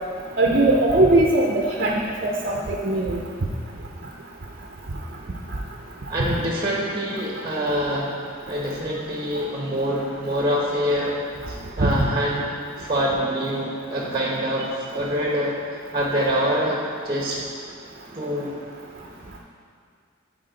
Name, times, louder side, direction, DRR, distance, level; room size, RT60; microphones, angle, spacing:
voice 1, 0.4-3.2 11.8-11.9, right 2 dB, 45° right, -1 dB, 0.6 m, -20 dB
voice 2, 6.1-8.1 8.5-11.2 11.5-12.5 12.8-15.6 15.9-17.4 18.1-18.5, equal, 20° right, -3 dB, 0.9 m, -25 dB
12.0 x 4.3 x 3.9 m, 2.2 s
head